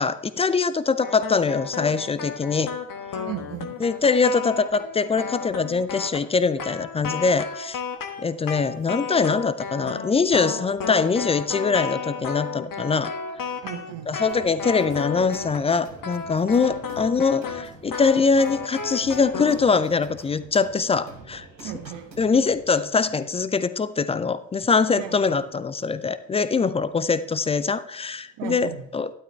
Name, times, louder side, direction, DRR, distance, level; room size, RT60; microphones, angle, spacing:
voice 1, 0.0-2.7 3.8-7.8 8.2-13.1 14.1-21.7 22.2-29.1, left 5 dB, 15° left, 15 dB, 0.3 m, -23 dB
sound 1, 1.0-15.7 16.0-19.6, left 6 dB, 40° left, 1.3 m, -33 dB
voice 2, 3.2-3.8 13.6-14.2 21.6-22.1 25.0-25.2 28.4-28.8, right 10 dB, 55° right, 6 dB, 1.7 m, -35 dB
sound 2, 14.3-22.6, right 3 dB, 90° right, 1.1 m, -46 dB
sound 3, 14.9-15.0 15.3-17.3 17.6-20.6 20.8-20.9, left 3 dB, 80° left, 2.6 m, -52 dB
12.5 x 12.0 x 3.4 m, 0.71 s
figure-of-eight pair, 45°, 50 cm